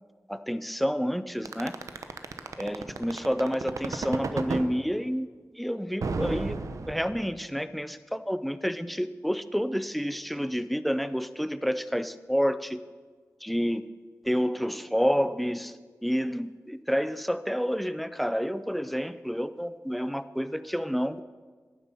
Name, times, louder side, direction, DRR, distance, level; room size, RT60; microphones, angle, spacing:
voice 1, 0.3-1.7 2.6-5.3 5.6-6.6 6.9-12.8 13.4-13.8 14.3-15.7 16.0-21.2, equal, ahead, 14 dB, 0.4 m, -29 dB
sound 1, 1.5-4.7 6.0-7.4, right 4 dB, 80° right, 0.7 m, -32 dB
9.7 x 7.3 x 6.9 m, 1.5 s
wide cardioid pair, 75°, 5 cm